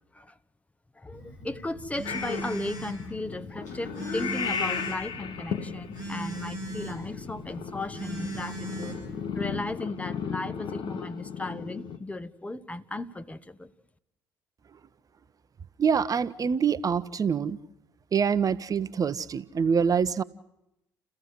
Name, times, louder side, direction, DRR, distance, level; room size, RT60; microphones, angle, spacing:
voice 1, 1.0-9.0 9.3-13.7, left 2 dB, 15° left, 1.3 m, -36 dB
Telephone, 1.1-9.6, right 1 dB, 80° left, 7.1 m, -39 dB
Purr / Meow, 2.0-12.0, left 6 dB, 50° left, 1.6 m, -35 dB
voice 2, 15.8-17.6 18.1-20.2, right 6 dB, 35° right, 1.0 m, -25 dB
29.5 x 15.0 x 8.0 m
hypercardioid pair, 55°, 10 cm